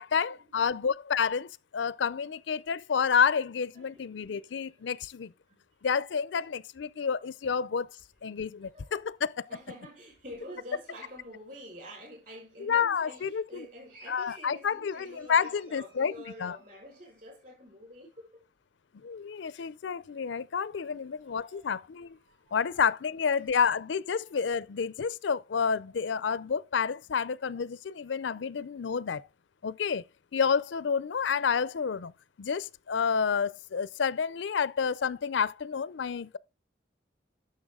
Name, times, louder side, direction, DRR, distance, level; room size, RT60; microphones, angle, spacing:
voice 1, 0.0-5.3 5.8-7.9 8.2-9.4 12.6-13.7 14.1-16.1 16.4-16.6 19.0-22.2 22.5-29.3 29.6-30.0 30.3-32.1 32.4-36.4, left 6 dB, 85° left, 0.5 m, -29 dB
voice 2, 3.7-4.8 5.5-5.6 6.3-6.5 7.4-7.6 8.3-8.9 9.5-18.4 21.2-21.8 22.2-22.8 23.4-23.5 24.1-24.4, equal, 45° right, 5.5 m, -48 dB
10.5 x 6.6 x 3.7 m
head